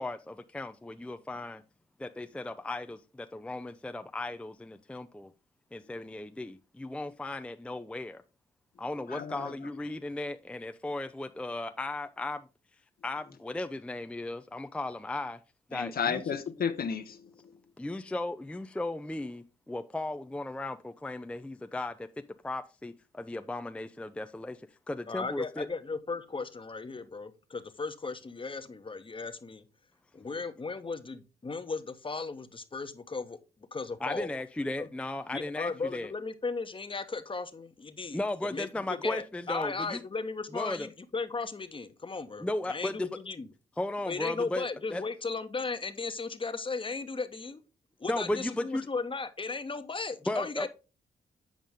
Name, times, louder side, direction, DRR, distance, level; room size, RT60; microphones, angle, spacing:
voice 1, 0.0-1.6 2.0-5.3 5.7-8.2 8.8-12.4 13.0-15.4 15.7-16.2 17.8-21.9 22.4-24.6 24.9-25.7 34.0-36.1 38.1-40.0 40.5-40.9 42.4-43.1 43.8-45.0 48.1-48.8 50.3-50.7, left 2 dB, 5° left, 0.4 m, -36 dB
voice 2, 9.1-9.6 15.7-17.3, left 7 dB, 55° left, 0.8 m, -32 dB
voice 3, 25.1-29.6 30.1-33.4 33.7-34.4 34.8-34.9 35.3-43.5 44.1-47.6 48.0-50.7, left 4 dB, 30° left, 1.0 m, -36 dB
7.4 x 5.1 x 3.6 m
supercardioid pair, 50°, 18 cm